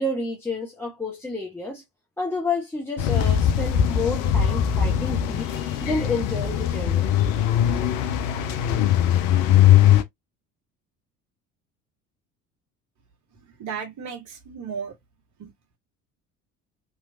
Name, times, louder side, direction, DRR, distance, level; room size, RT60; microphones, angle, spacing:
voice 1, 0.0-1.8 2.2-7.1, left 2 dB, 5° left, 0.9 m, -30 dB
sound 1, 3.0-10.0, left 10 dB, 60° left, 0.7 m, -20 dB
voice 2, 13.6-14.9 15.4-15.5, right 6 dB, 40° right, 1.5 m, -34 dB
3.2 x 3.0 x 2.6 m
figure-of-eight pair, 60°, 45 cm